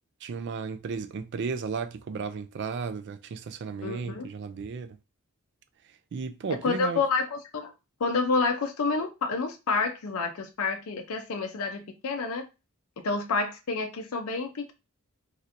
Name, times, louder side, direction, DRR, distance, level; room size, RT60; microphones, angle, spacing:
voice 1, 0.2-5.0 6.1-7.0, right 5 dB, 55° right, 0.3 m, -34 dB
voice 2, 3.8-4.3 6.6-7.7 8.0-12.5 13.0-14.7, left 4 dB, 85° left, 0.5 m, -29 dB
3.2 x 2.7 x 2.5 m
head